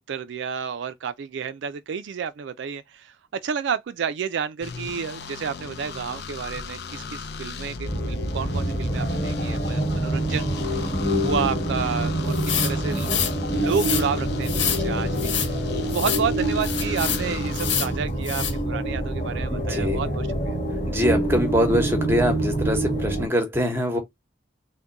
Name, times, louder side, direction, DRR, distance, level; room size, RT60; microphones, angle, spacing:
voice 1, 0.1-10.9 11.1-13.2 13.5-15.3 15.9-20.6, right 6 dB, 70° right, 0.3 m, -30 dB
sound 1, 4.6-17.8, left 4 dB, 55° left, 0.5 m, -36 dB
sound 2, 7.8-23.3, right 1 dB, 40° left, 1.3 m, -26 dB
sound 3, 12.3-13.3 13.7-14.0 14.4-14.8 15.2-15.5 15.9-16.2 16.6-17.2 17.5-17.9 18.2-18.5, left 9 dB, 75° left, 1.1 m, -27 dB
voice 2, 19.5-20.0 20.8-24.0, equal, 10° right, 0.9 m, -23 dB
3.6 x 2.1 x 3.9 m
head